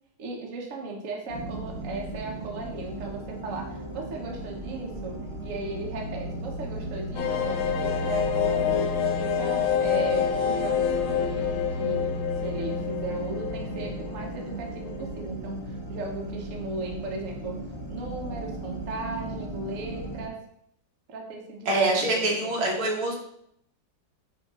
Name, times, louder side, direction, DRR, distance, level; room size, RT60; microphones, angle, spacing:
voice 1, 0.2-5.1 5.4-12.2 12.4-17.5 17.9-20.4 21.1-22.5, right 2 dB, 45° right, 0 dB, 1.2 m, -37 dB
sound 1, 1.3-20.3, right 1 dB, 40° left, 1.1 m, -35 dB
sound 2, 7.2-14.6 14.9-15.0 15.3-15.4, left 8 dB, 90° left, 1.6 m, -27 dB
voice 2, 21.7-23.1, right 2 dB, 85° right, 0 dB, 2.0 m, -25 dB
6.4 x 2.9 x 5.3 m, 0.74 s
omnidirectional pair, 2.3 m